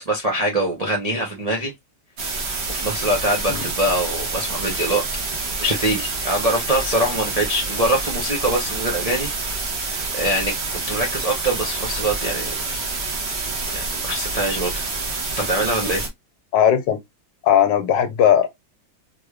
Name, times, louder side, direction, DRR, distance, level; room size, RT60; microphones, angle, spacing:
voice 1, 0.0-1.7 2.7-5.0 5.6-9.8 10.1-10.5 10.9-12.6 13.7-14.8 15.4-16.1, right 1 dB, 65° right, 0.3 m, -23 dB
sound 1, 2.2-16.1, right 3 dB, 45° right, 0.9 m, -27 dB
voice 2, 16.5-17.0 17.4-18.5, left 9 dB, 75° left, 1.3 m, -17 dB
3.6 x 3.1 x 2.3 m
omnidirectional pair, 2.0 m